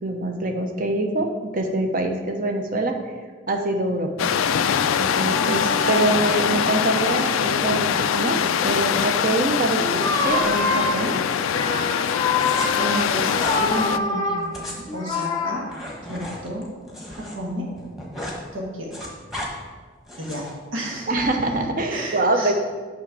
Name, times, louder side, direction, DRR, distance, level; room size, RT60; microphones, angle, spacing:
voice 1, 0.0-3.0 3.5-4.3 5.0-11.2 21.1-22.5, right 2 dB, 45° right, 4 dB, 0.7 m, -24 dB
sound 1, 4.2-14.0, left 8 dB, 85° left, 0.4 m, -23 dB
sound 2, 5.1-6.4 7.5-7.8 9.7-15.5, left 3 dB, 20° left, 0.6 m, -26 dB
sound 3, 12.4-12.7 13.3-13.6 14.4-17.4 17.7-18.4 18.7-19.5 20.1-20.5, left 1 dB, ahead, 1.1 m, -35 dB
voice 2, 12.8-15.7 16.1-16.7 17.1-17.7 18.5-18.9 20.2-21.1 21.9-22.5, right 1 dB, 85° right, -2 dB, 1.4 m, -31 dB
6.3 x 6.0 x 4.8 m, 1.4 s
head